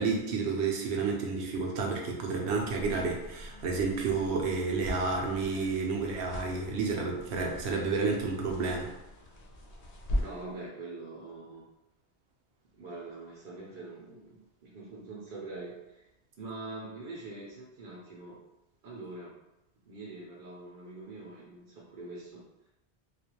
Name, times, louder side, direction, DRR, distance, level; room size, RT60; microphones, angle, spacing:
voice 1, 0.0-8.9, right 4 dB, 90° right, 0 dB, 0.9 m, -30 dB
sound 1, 2.5-10.5, left 1 dB, 50° left, 0.5 m, -40 dB
voice 2, 10.2-11.7 12.7-16.1 16.4-18.4 18.8-19.4 19.8-22.4, right 2 dB, 60° right, -3 dB, 0.7 m, -44 dB
2.4 x 2.2 x 2.9 m, 0.93 s
omnidirectional pair, 1.1 m